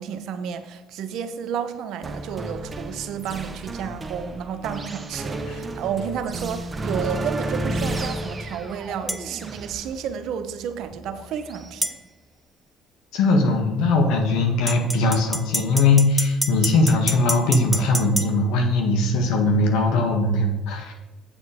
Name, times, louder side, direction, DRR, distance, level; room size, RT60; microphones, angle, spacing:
voice 1, 0.0-12.0, right 7 dB, 65° right, 9 dB, 0.9 m, -31 dB
sound 1, 2.0-11.8, right 2 dB, 25° right, 1.0 m, -32 dB
sound 2, 9.1-9.2 11.8-12.0 14.7-18.3, equal, ahead, 0.6 m, -27 dB
voice 2, 13.1-20.9, left 2 dB, 75° left, 3 dB, 1.7 m, -20 dB
8.2 x 7.3 x 5.1 m, 1.0 s
supercardioid pair, 100°, 0 cm